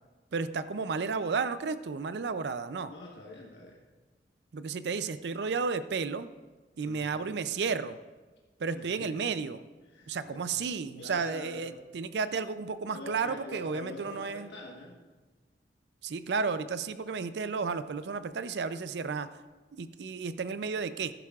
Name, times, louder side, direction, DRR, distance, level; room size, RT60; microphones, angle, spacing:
voice 1, 0.3-2.9 4.5-6.3 6.8-8.0 8.6-9.6 10.1-14.5 16.0-19.3 19.8-21.1, right 5 dB, 70° right, 13 dB, 0.4 m, -32 dB
voice 2, 2.9-3.8 6.8-7.3 8.7-9.3 9.9-10.6 11.0-11.8 12.9-15.0, left 1 dB, 75° left, -2 dB, 1.3 m, -45 dB
15.0 x 11.5 x 2.4 m, 1.3 s
head